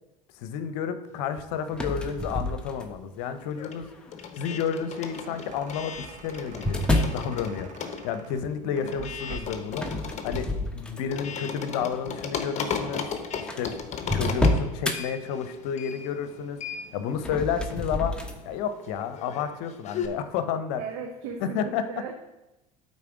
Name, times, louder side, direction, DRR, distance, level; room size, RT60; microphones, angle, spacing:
voice 1, 0.4-3.9 4.4-6.8 7.1-9.9 10.2-13.1 13.4-13.8 14.1-16.6 16.9-18.2 18.4-20.8 21.4-21.9, left 7 dB, 65° left, 10 dB, 0.7 m, -31 dB
sound 1, 1.2-2.5 2.8-20.1, left 6 dB, 35° left, 0.9 m, -37 dB
sound 2, 1.7-3.1 3.8-4.2 5.3-7.3 9.7-11.3 11.8-12.0 12.8-12.9 13.0-13.1 13.5-15.0 17.1-18.4, left 1 dB, 5° left, 1.0 m, -28 dB
sound 3, 4.7-9.8, right 5 dB, 40° right, 1.0 m, -46 dB
voice 2, 8.6-9.1 20.8-22.1, right 6 dB, 60° right, 4 dB, 0.8 m, -37 dB
8.5 x 4.1 x 4.9 m, 0.97 s
hypercardioid pair, 75°, 20 cm